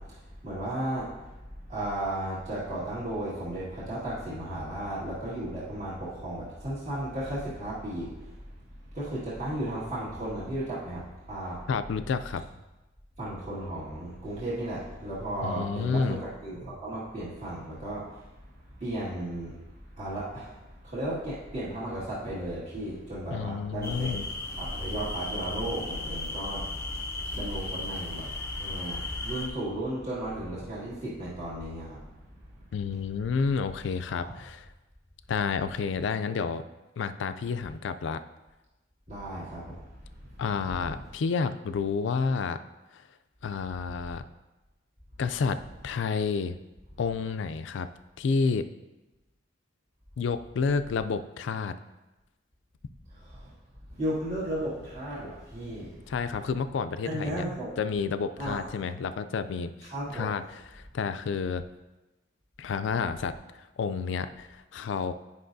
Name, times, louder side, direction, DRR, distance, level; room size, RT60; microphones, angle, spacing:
voice 1, 0.0-8.5 8.9-11.7 13.2-32.7 34.1-34.4 39.1-40.8 53.1-53.5 53.9-56.1 57.0-57.7 58.4-58.7 59.9-60.3, right 1 dB, 35° right, -10 dB, 1.8 m, -35 dB
voice 2, 11.7-12.4 15.4-16.2 23.3-24.3 32.7-34.7 35.3-36.6 37.0-38.2 40.4-42.6 42.9-43.0 43.4-44.2 45.2-45.6 45.8-46.6 47.0-47.9 48.2-48.6 50.2-51.8 56.1-57.4 57.8-60.4 60.7-61.6 62.6-65.1, left 5 dB, 65° left, 11 dB, 0.3 m, -30 dB
sound 1, 23.8-29.5, left 2 dB, 10° left, 0.6 m, -35 dB
10.0 x 5.4 x 2.6 m, 1.1 s
head